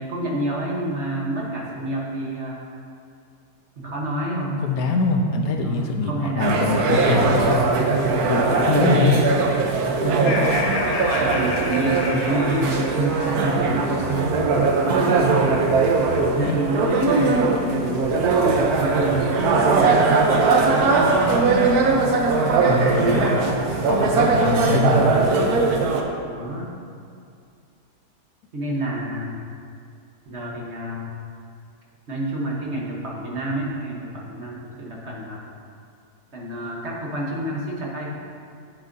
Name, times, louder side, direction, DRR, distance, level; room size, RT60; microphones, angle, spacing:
voice 1, 0.0-2.6 3.8-4.6 5.6-6.7 7.0-7.4 8.3-9.2 10.0-10.5 11.2-14.4 15.0-15.5 16.3-20.1 20.6-21.3 21.7-22.1 22.9-23.3 26.2-26.7 28.5-29.4 30.3-31.1 32.1-35.4 36.3-38.1, right 1 dB, 45° right, -3 dB, 1.3 m, -29 dB
voice 2, 4.6-7.6 8.3-9.2 16.2-16.6 22.6-23.5 23.8-25.2, left 3 dB, 70° left, 3 dB, 1.1 m, -23 dB
sound 1, 6.4-26.0, right 4 dB, 70° right, 1.3 m, -20 dB
Laughter, 10.1-13.3, left 2 dB, 90° left, 1.4 m, -29 dB
9.7 x 8.1 x 2.6 m, 2.3 s
omnidirectional pair, 1.7 m